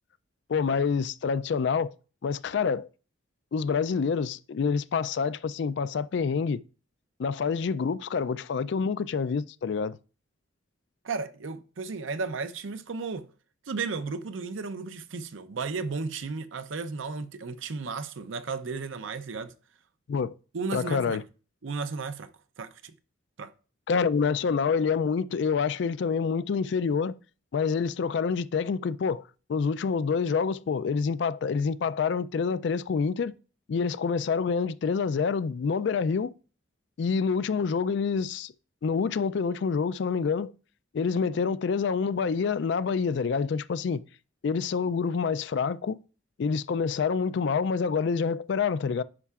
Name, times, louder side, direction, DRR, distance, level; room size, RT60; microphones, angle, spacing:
voice 1, 0.5-1.9 2.2-2.9 3.5-6.6 7.2-10.0 20.1-20.3 20.7-21.2 23.9-27.2 27.5-29.2 29.5-33.3 33.7-36.3 37.0-38.5 38.8-40.5 40.9-44.0 44.4-46.0 46.4-49.0, left 5 dB, 60° left, 0.3 m, -27 dB
voice 2, 11.0-13.3 13.7-19.5 20.5-21.2 21.6-22.3 22.6-22.9 23.4-23.5, right 4 dB, 75° right, 0.6 m, -34 dB
9.7 x 5.5 x 2.4 m
head